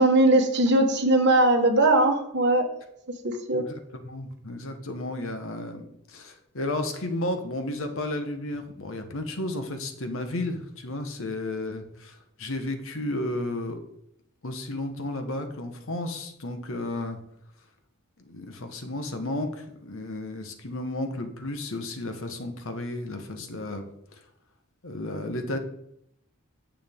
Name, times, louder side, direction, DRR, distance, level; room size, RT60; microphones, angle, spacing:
voice 1, 0.0-2.6 3.2-3.6, right 2 dB, 50° right, 3 dB, 1.5 m, -20 dB
voice 2, 3.6-13.8 14.4-17.2 18.2-23.8 24.8-25.6, left 1 dB, 60° left, 6 dB, 1.2 m, -33 dB
9.1 x 7.5 x 3.6 m, 0.77 s
head